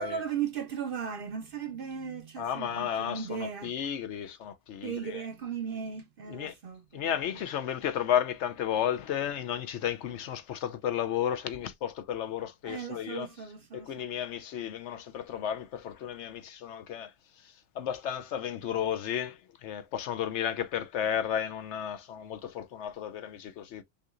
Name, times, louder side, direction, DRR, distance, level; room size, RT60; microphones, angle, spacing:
voice 1, 0.0-3.7 4.8-7.4 12.6-14.1, right 7 dB, 55° right, 0.7 m, -37 dB
voice 2, 2.4-5.2 6.3-6.5 6.9-13.3 13.7-17.1 17.8-23.8, left 9 dB, 70° left, 0.8 m, -33 dB
5.6 x 2.9 x 2.4 m
omnidirectional pair, 1.3 m